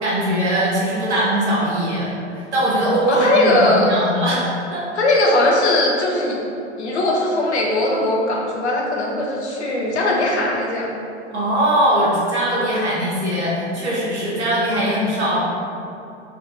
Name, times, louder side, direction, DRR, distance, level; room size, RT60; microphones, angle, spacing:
voice 1, 0.0-4.4 4.7-4.8 11.3-15.4, right 1 dB, 75° right, -7 dB, 1.3 m, -21 dB
voice 2, 3.1-4.0 4.9-6.4 6.8-10.9, left 1 dB, 75° left, -2 dB, 0.9 m, -19 dB
3.9 x 2.8 x 3.7 m, 2.6 s
figure-of-eight pair, 75°, 34 cm